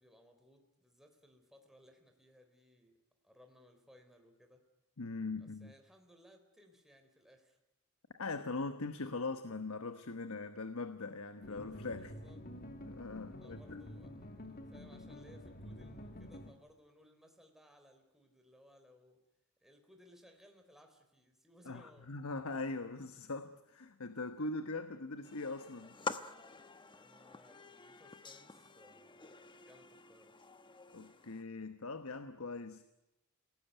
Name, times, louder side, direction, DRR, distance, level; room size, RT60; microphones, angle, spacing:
voice 1, 0.0-3.0 3.2-4.6 5.4-7.6 12.0-12.4 13.4-19.2 19.6-22.1 26.8-30.4, equal, ahead, 3.7 m, -63 dB
voice 2, 5.0-5.7 8.2-12.1 12.9-13.8 21.6-26.0 30.9-32.8, left 3 dB, 70° left, 1.2 m, -41 dB
sound 1, 11.4-16.5, left 1 dB, 45° left, 2.2 m, -49 dB
sound 2, 25.2-31.4, left 4 dB, 20° left, 1.0 m, -47 dB
27.0 x 18.0 x 9.1 m
head